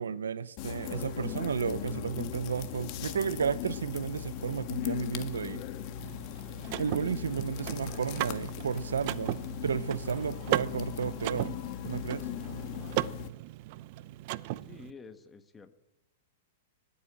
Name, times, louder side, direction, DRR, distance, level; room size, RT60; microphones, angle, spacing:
voice 1, 0.0-5.6 6.8-11.6 11.9-12.3, right 7 dB, 90° right, 0.7 m, -33 dB
sound 1, 0.6-13.3, left 10 dB, 45° left, 1.4 m, -38 dB
Car / Mechanisms, 6.0-14.9, right 17 dB, 50° right, 0.6 m, -37 dB
voice 2, 14.6-15.7, left 4 dB, 15° left, 1.4 m, -49 dB
19.5 x 8.4 x 8.7 m
hypercardioid pair, 125°, 0 cm